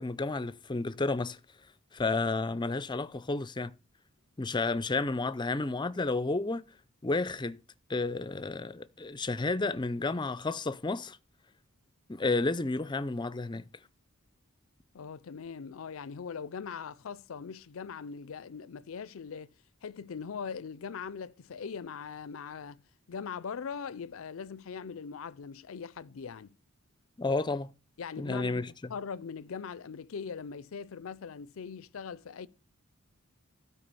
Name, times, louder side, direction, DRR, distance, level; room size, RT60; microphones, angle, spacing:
voice 1, 0.0-1.4 1.9-3.7 4.4-6.7 7.0-7.6 7.9-11.2 12.1-13.6 27.2-27.7 28.2-28.9, left 3 dB, 20° left, 0.5 m, -31 dB
voice 2, 14.9-19.5 19.8-22.8 23.1-26.5 28.0-32.5, left 6 dB, 75° left, 0.5 m, -41 dB
12.5 x 4.7 x 6.9 m
head